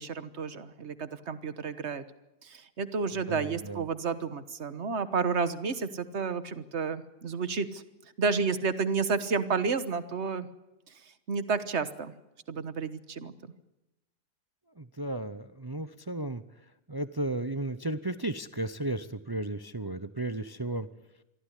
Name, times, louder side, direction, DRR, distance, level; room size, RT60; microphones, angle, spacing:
voice 1, 0.0-2.0 2.4-7.8 8.2-10.5 11.3-12.1 12.5-13.3, right 5 dB, 50° right, 13 dB, 1.5 m, -31 dB
voice 2, 3.3-3.9 14.8-16.4 16.9-20.9, right 2 dB, 30° right, 12 dB, 0.4 m, -34 dB
23.5 x 15.0 x 10.0 m, 0.97 s
omnidirectional pair, 1.7 m